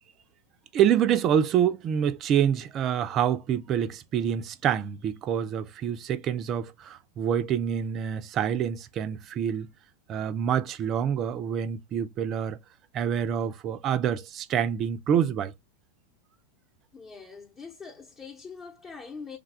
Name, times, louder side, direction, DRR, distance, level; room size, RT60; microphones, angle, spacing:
voice 1, 0.7-9.7 10.1-12.6 12.9-15.5, right 9 dB, 30° right, 0.4 m, -26 dB
voice 2, 16.9-19.4, left 5 dB, 20° left, 0.9 m, -43 dB
3.5 x 2.3 x 3.3 m
figure-of-eight pair, 90°, 0 cm